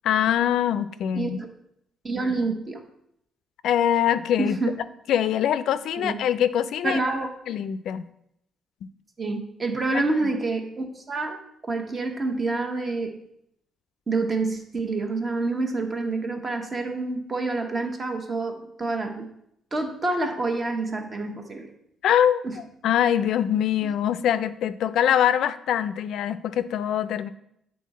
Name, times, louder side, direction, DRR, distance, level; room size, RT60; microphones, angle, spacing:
voice 1, 0.0-1.4 3.6-4.6 5.1-7.0 7.5-8.0 9.9-10.3 22.0-27.3, left 10 dB, 75° left, 14 dB, 0.3 m, -23 dB
voice 2, 1.1-1.5 2.0-2.8 4.4-4.7 6.0-6.1 6.8-7.3 9.2-13.1 14.1-19.3 19.7-21.7 22.4-22.6, right 3 dB, 35° right, 4 dB, 1.2 m, -27 dB
8.4 x 3.8 x 4.2 m, 0.75 s
cardioid pair, 90°, 0 cm